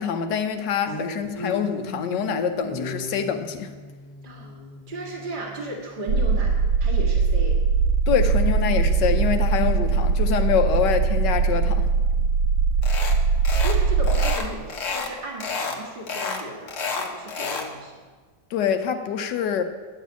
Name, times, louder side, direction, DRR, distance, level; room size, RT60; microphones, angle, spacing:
voice 1, 0.0-3.7 8.1-11.8 18.5-19.6, left 7 dB, 80° left, 8 dB, 1.3 m, -25 dB
sound 1, 0.9-6.5 8.1-12.3, left 1 dB, 20° left, 1.0 m, -39 dB
voice 2, 4.2-4.6 4.9-6.5 6.8-7.6 12.8-13.0 13.5-17.9, right 2 dB, 30° right, -2 dB, 1.8 m, -35 dB
sound 2, 6.1-14.4, right 5 dB, 65° right, 1.2 m, -21 dB
sound 3, 12.8-13.2 13.4-13.8 14.0-15.1 15.4-15.8 16.1-17.7, left 4 dB, 50° left, 1.4 m, -29 dB
10.5 x 6.2 x 8.2 m, 1.4 s
omnidirectional pair, 1.9 m